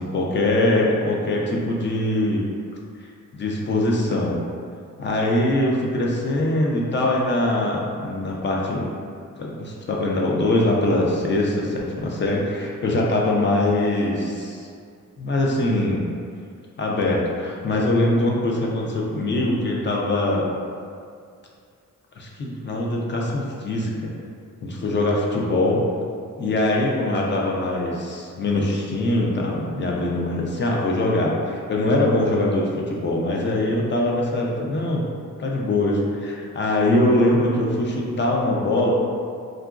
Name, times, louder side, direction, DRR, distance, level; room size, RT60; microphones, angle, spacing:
voice 1, 0.0-2.4 3.0-4.4 5.0-8.9 9.4-14.7 15.2-16.0 16.8-20.5 22.2-24.1 24.6-25.8 26.4-35.1 35.4-38.9, left 1 dB, 35° left, -2 dB, 0.4 m, -22 dB
2.9 x 2.4 x 2.4 m, 2.3 s
wide cardioid pair, 125°, 33 cm